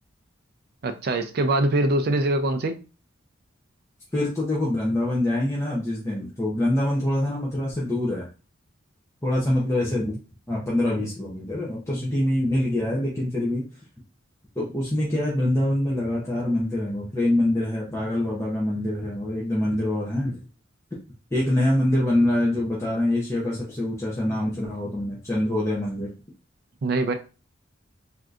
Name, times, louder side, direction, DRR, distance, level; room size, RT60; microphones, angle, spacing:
voice 1, 0.8-2.8 26.8-27.1, right 2 dB, 50° right, 0.4 m, -23 dB
voice 2, 4.1-8.3 9.2-10.2 10.5-13.6 14.6-20.4 21.3-26.1, left 1 dB, 15° left, 0.6 m, -25 dB
3.5 x 2.6 x 2.4 m
head